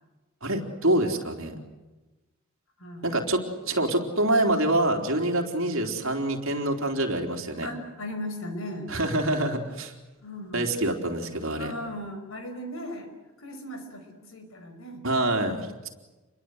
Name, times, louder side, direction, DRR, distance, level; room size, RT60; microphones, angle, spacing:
voice 1, 0.4-1.5 3.0-7.7 8.9-9.9 10.5-11.7 15.0-15.9, right 1 dB, 65° right, 3 dB, 4.0 m, -26 dB
voice 2, 2.8-3.1 7.6-9.5 10.2-10.8 11.6-13.1 13.4-15.1, left 1 dB, 65° left, 7 dB, 5.3 m, -37 dB
28.5 x 22.5 x 8.2 m, 1.1 s
head